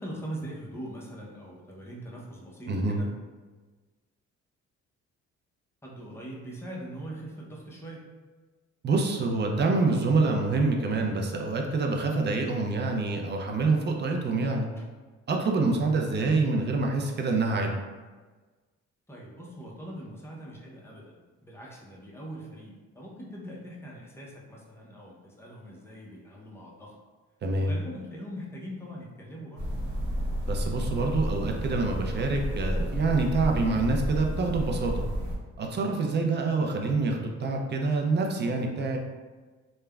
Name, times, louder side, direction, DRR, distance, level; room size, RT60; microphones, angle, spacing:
voice 1, 0.0-3.1 5.8-8.0 14.8-14.9 19.1-26.9 27.5-29.6, right 1 dB, 10° left, -4 dB, 0.6 m, -42 dB
voice 2, 2.7-3.0 8.8-14.7 15.3-17.7 27.4-27.7 30.5-35.0 35.6-39.0, right 3 dB, 35° right, 2 dB, 0.4 m, -26 dB
sound 1, 29.6-35.4, equal, 85° right, 0.8 m, -31 dB
3.2 x 2.1 x 2.3 m, 1.3 s
cardioid pair, 90°, 30 cm